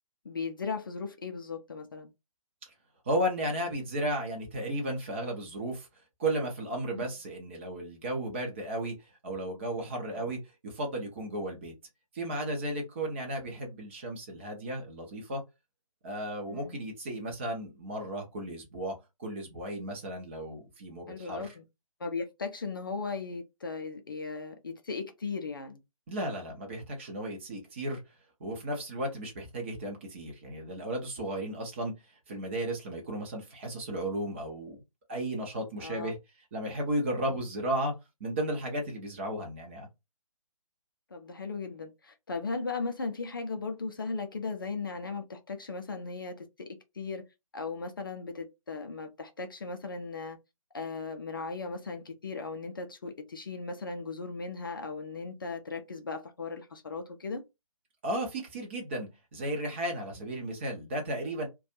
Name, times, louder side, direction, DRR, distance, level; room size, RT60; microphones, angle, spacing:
voice 1, 0.2-2.1 6.9-7.0 10.1-10.2 16.5-16.8 21.1-21.6 22.0-25.8 35.8-36.1 41.1-47.2 47.5-50.4 50.7-57.4, left 4 dB, 40° left, 0.4 m, -37 dB
voice 2, 3.0-5.9 6.2-9.0 9.2-11.7 12.1-15.4 16.0-21.5 26.1-28.0 28.4-34.8 35.1-36.2 36.5-37.9 38.2-39.9 58.0-61.5, right 1 dB, 20° right, 0.6 m, -34 dB
2.4 x 2.3 x 2.7 m
figure-of-eight pair, 145°, 18 cm